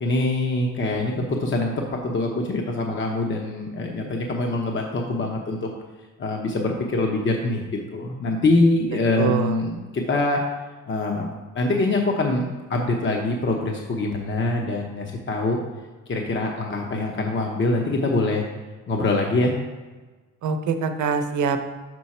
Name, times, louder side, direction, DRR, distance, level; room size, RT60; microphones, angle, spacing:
voice 1, 0.0-5.6 6.2-7.6 7.9-10.4 10.9-11.3 11.5-15.6 16.1-18.5 18.9-19.5, left 2 dB, 40° left, 1 dB, 0.9 m, -24 dB
voice 2, 9.2-9.6 20.4-21.7, right 5 dB, 75° right, 7 dB, 0.8 m, -24 dB
6.2 x 5.6 x 4.2 m, 1.3 s
cardioid pair, 90°, 30 cm